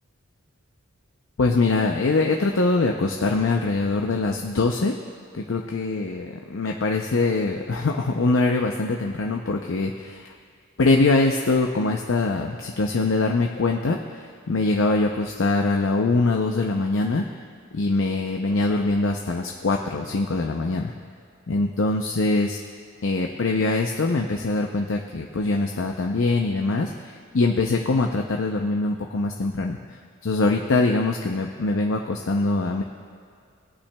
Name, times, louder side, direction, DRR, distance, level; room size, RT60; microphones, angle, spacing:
voice 1, 1.4-4.9 5.3-10.3 10.8-17.2 17.7-20.9 21.5-22.6 23.0-29.8 30.2-32.8, left 3 dB, 80° left, 2 dB, 0.6 m, -23 dB
20.5 x 8.6 x 2.3 m, 2.2 s
head